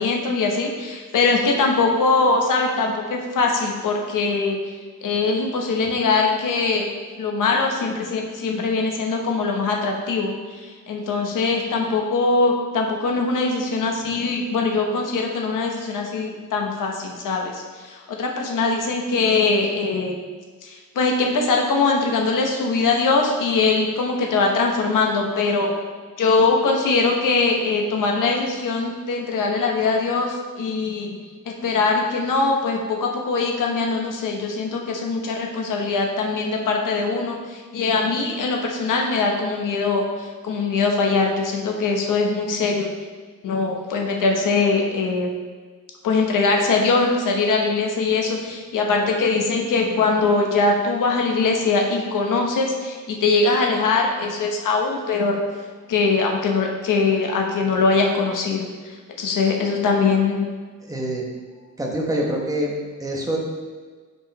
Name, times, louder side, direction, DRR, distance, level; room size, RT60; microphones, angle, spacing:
voice 1, 0.0-4.6 5.0-6.9 7.2-10.3 10.6-20.2 20.6-25.7 26.2-31.1 31.5-42.9 43.4-45.3 46.0-55.4 55.9-58.7 59.2-60.4, left 3 dB, 75° left, 1 dB, 1.0 m, -22 dB
voice 2, 60.8-61.3 61.8-62.7 63.0-63.4, right 1 dB, 10° right, -1 dB, 1.0 m, -26 dB
5.6 x 4.9 x 4.0 m, 1.5 s
wide cardioid pair, 140°, 32 cm